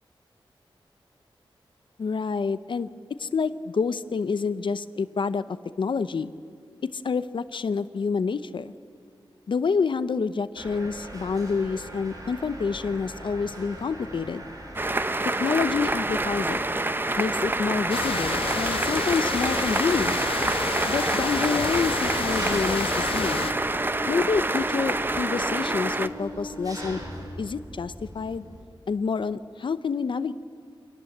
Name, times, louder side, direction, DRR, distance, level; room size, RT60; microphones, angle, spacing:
voice 1, 2.0-2.9 3.2-6.3 6.8-8.7 9.5-14.4 15.2-16.6 17.2-20.2 20.9-23.5 24.1-27.0 27.4-28.4 28.9-30.3, left 5 dB, 60° left, 14 dB, 0.7 m, -28 dB
Mechanisms, 10.6-28.6, right 1 dB, 40° right, 5.2 m, -40 dB
sound 1, 14.8-26.1, right 2 dB, 20° right, 0.9 m, -27 dB
sound 2, 17.9-23.5, left 5 dB, 80° left, 1.3 m, -31 dB
25.5 x 18.5 x 7.9 m, 2.4 s
wide cardioid pair, 105°, 9 cm